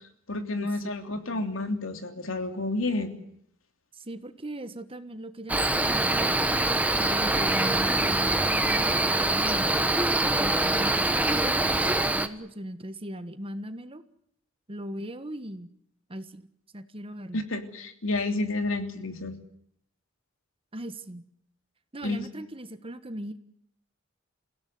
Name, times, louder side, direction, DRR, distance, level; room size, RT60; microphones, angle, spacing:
voice 1, 0.3-3.1 17.3-19.3 22.0-22.2, left 2 dB, 70° left, 6 dB, 3.1 m, -30 dB
voice 2, 3.9-9.7 10.4-14.0 14.7-15.7 16.1-16.5 16.7-17.4 20.7-21.2 21.9-23.4, right 1 dB, 25° right, 10 dB, 1.4 m, -39 dB
Cricket, 5.5-12.3, right 2 dB, 5° right, 1.2 m, -24 dB
28.5 x 17.0 x 9.5 m, 0.74 s
head